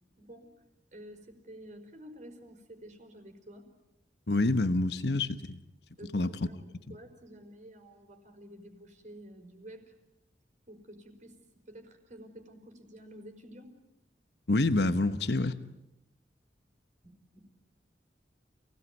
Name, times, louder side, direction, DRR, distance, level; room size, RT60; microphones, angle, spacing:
voice 1, 0.2-0.5 0.9-3.7 6.0-6.6 6.9-9.9 10.7-11.4 11.7-13.8 17.3-17.4, equal, 45° right, 5 dB, 4.8 m, -50 dB
voice 2, 4.3-5.6 6.1-6.3 14.5-15.5, left 2 dB, 70° left, 11 dB, 1.1 m, -27 dB
29.0 x 18.5 x 9.5 m, 0.89 s
head